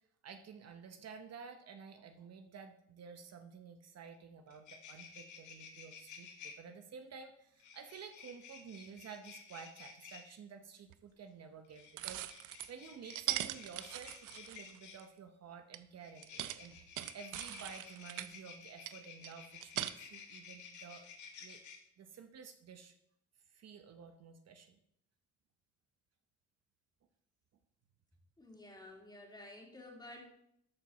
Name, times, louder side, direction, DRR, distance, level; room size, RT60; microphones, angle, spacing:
voice 1, 0.2-12.2 12.7-21.1 21.4-21.6 22.0-22.9 23.5-24.8, right 6 dB, 55° right, 7 dB, 0.8 m, -52 dB
sound 1, 4.1-4.2 4.5-6.5 7.6-10.2 11.6-15.0 16.0-21.8, left 6 dB, 75° left, 1.6 m, -53 dB
sound 2, 10.9-11.0 12.0-12.7 13.1-15.0 15.7-15.8 16.2-18.3 18.9-19.9, right 13 dB, 85° right, 0.5 m, -40 dB
voice 2, 28.4-30.2, left 1 dB, 15° left, 0 dB, 2.5 m, -52 dB
13.0 x 4.6 x 4.1 m, 0.74 s
cardioid pair, 90°, 30 cm